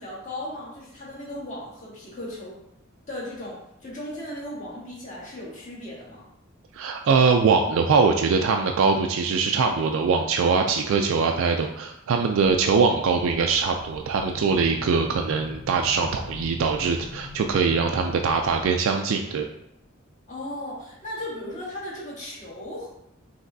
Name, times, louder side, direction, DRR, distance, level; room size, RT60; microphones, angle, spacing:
voice 1, 0.0-2.6 3.1-6.2 20.3-22.9, left 1 dB, 35° left, -7 dB, 1.6 m, -36 dB
voice 2, 6.7-19.5, right 5 dB, 75° right, 4 dB, 0.3 m, -22 dB
sound 1, 13.2-18.7, left 2 dB, 70° left, 0.5 m, -42 dB
5.2 x 3.2 x 2.6 m, 0.80 s
head